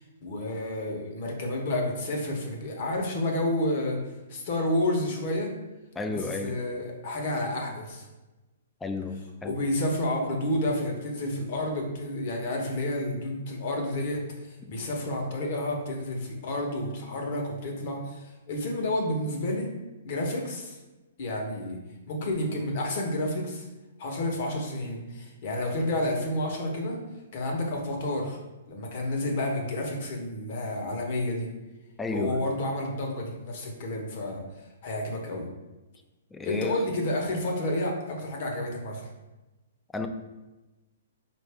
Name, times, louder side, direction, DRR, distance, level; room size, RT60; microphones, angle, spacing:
voice 1, 0.2-4.0 4.3-5.5 6.1-8.1 9.4-19.7 20.0-20.8 21.2-21.8 22.1-23.7 24.0-27.0 27.3-28.4 28.7-31.5 32.1-34.4 34.8-35.5 36.4-39.1, left 1 dB, 50° left, 1 dB, 1.0 m, -30 dB
voice 2, 6.0-6.6 8.8-9.6 32.0-32.4 36.3-36.8 39.9-40.1, left 3 dB, 10° left, 6 dB, 0.3 m, -32 dB
4.7 x 2.6 x 3.4 m, 1.1 s
hypercardioid pair, 145°, 0 cm